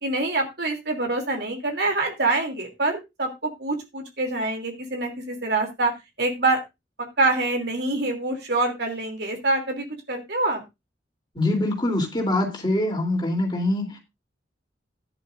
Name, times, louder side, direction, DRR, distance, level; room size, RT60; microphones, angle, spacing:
voice 1, 0.0-5.9 6.2-6.6 7.0-10.6, right 2 dB, 60° right, 3 dB, 3.1 m, -25 dB
voice 2, 11.3-14.0, left 1 dB, 25° left, 2 dB, 3.4 m, -24 dB
14.0 x 10.5 x 2.6 m, 0.23 s
head